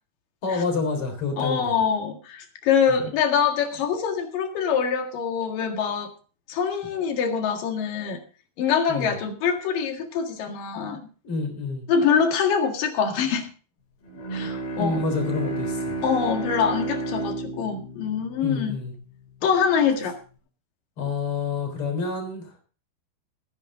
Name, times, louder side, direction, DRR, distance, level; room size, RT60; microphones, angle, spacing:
voice 1, 0.4-1.7 8.9-9.1 11.2-11.9 14.8-16.0 18.4-18.9 21.0-22.5, left 4 dB, 35° left, 4 dB, 4.4 m, -28 dB
voice 2, 1.4-6.1 6.5-8.2 8.6-11.0 11.9-13.5 14.3-15.0 16.0-18.8 19.4-20.2, left 6 dB, 65° left, 4 dB, 3.4 m, -24 dB
Bowed string instrument, 14.1-19.4, right 3 dB, 80° left, 5.9 m, -32 dB
18.0 x 9.8 x 3.7 m, 0.37 s
omnidirectional pair, 4.5 m